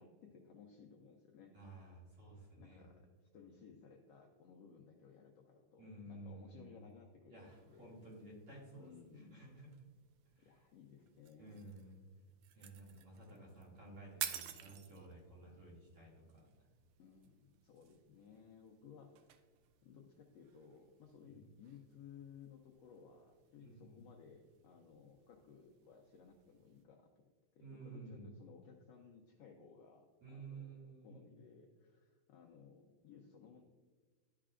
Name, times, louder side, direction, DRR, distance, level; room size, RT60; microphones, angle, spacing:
voice 1, 0.0-1.5 2.6-7.9 8.8-9.4 10.4-11.6 17.0-19.5 19.8-27.1 27.5-33.6, left 6 dB, 75° left, 1 dB, 1.5 m, -59 dB
voice 2, 1.5-2.9 5.8-6.7 7.3-9.9 10.3-10.6 11.4-12.0 12.5-16.5 21.2-21.4 23.6-24.0 27.6-28.3 30.2-31.4, right 2 dB, 45° right, -5 dB, 3.0 m, -54 dB
sound 1, 7.4-26.9, right 11 dB, 85° right, 1.5 m, -54 dB
11.5 x 5.7 x 2.5 m, 1.5 s
omnidirectional pair, 3.6 m